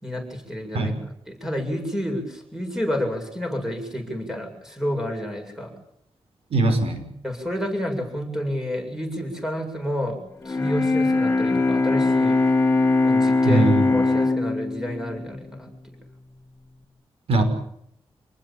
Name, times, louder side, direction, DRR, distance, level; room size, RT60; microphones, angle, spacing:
voice 1, 0.0-0.9 1.3-5.7 7.2-10.2 10.4-12.4 13.0-15.7, equal, 5° right, 3 dB, 7.7 m, -29 dB
voice 2, 6.5-7.1 13.4-14.1 17.3-17.4, right 2 dB, 85° right, 7 dB, 6.1 m, -21 dB
Bowed string instrument, 10.4-16.4, left 3 dB, 25° left, 2.2 m, -22 dB
28.0 x 19.5 x 9.0 m, 0.74 s
wide cardioid pair, 130°, 10 cm